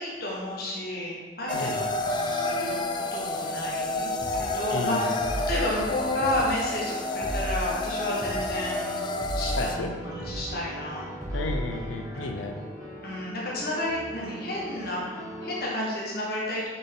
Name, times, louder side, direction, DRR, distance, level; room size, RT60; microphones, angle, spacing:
voice 1, 0.0-5.2 5.5-9.0 9.3-11.1 12.0-12.3 13.0-16.7, left 1 dB, 50° left, -5 dB, 1.5 m, -32 dB
voice 2, 1.5-1.9 4.7-5.1 9.6-9.9 11.3-12.6, left 3 dB, 90° left, 5 dB, 0.7 m, -32 dB
sound 1, 1.5-9.8, left 2 dB, 25° left, 0.4 m, -30 dB
Piano, 1.9-15.6, equal, 20° right, 1.4 m, -41 dB
sound 2, 4.2-4.4 5.2-5.6 6.2-6.4 7.2-7.6 8.2-8.4 9.2-9.6 10.2-10.4 11.2-11.6, equal, 5° left, 1.8 m, -32 dB
7.6 x 5.7 x 3.9 m, 1.4 s
head